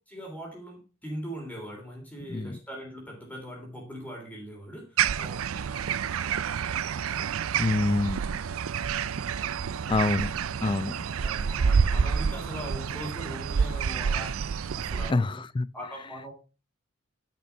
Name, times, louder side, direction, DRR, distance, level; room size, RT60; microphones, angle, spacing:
voice 1, 0.1-5.5 11.2-14.4 14.8-15.4 15.7-16.3, right 1 dB, 5° left, 3.3 m, -40 dB
voice 2, 2.3-2.6 7.6-8.2 9.9-10.3 10.6-11.1 15.1-15.7, left 2 dB, 25° left, 0.4 m, -26 dB
sound 1, 5.0-15.1, right 6 dB, 85° right, 0.5 m, -28 dB
10.5 x 6.1 x 5.9 m
head